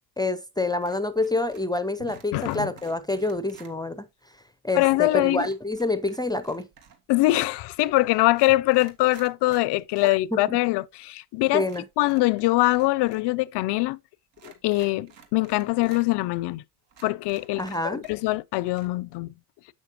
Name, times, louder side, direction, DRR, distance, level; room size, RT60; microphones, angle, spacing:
voice 1, 0.2-4.1 4.6-6.7 10.3-10.6 11.5-11.8 17.6-18.0, left 2 dB, 10° left, 0.5 m, -27 dB
sound 1, 0.8-1.8 2.0-3.7 5.3-7.1 7.8-7.9 8.3-10.2 10.5-10.6 11.6-13.3 13.5-13.6 14.3-16.1 16.5-16.6 16.9-18.4 18.7-18.9, right 6 dB, 65° right, 2.0 m, -52 dB
voice 2, 2.3-2.7 4.7-5.5 7.1-11.7 12.0-14.0 14.4-16.6 17.0-17.6 17.9-19.3, left 19 dB, 60° left, 0.5 m, -23 dB
7.5 x 6.2 x 2.9 m
hypercardioid pair, 65°, 48 cm